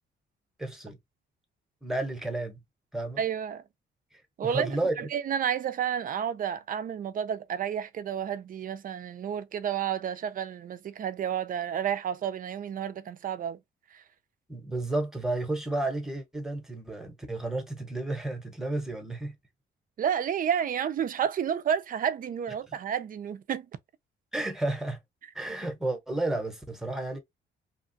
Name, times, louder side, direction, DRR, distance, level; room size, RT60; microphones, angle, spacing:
voice 1, 0.6-1.0 1.8-2.6 2.9-3.2 4.1-5.1 14.5-19.3 24.3-25.0 25.3-27.2, right 2 dB, ahead, 0.9 m, -32 dB
voice 2, 3.2-3.6 4.4-13.6 13.9-14.0 20.0-23.7, right 8 dB, 45° right, 0.4 m, -31 dB
2.9 x 2.3 x 2.7 m
cardioid pair, 125°, 20 cm